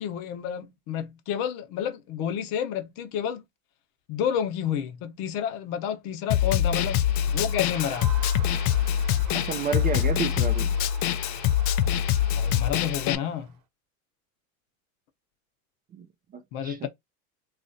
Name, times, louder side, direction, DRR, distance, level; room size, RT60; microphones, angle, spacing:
voice 1, 0.0-3.4 4.1-8.1 12.4-13.5 16.5-16.9, left 9 dB, 60° left, 0.9 m, -30 dB
Snare drum, 6.3-13.2, left 10 dB, 45° left, 0.4 m, -24 dB
Crowd, 6.7-13.6, right 8 dB, 50° right, 0.9 m, -45 dB
voice 2, 9.3-10.7 15.9-16.1 16.3-16.9, right 6 dB, 25° right, 0.4 m, -31 dB
3.0 x 2.5 x 2.6 m
supercardioid pair, 115°, 43 cm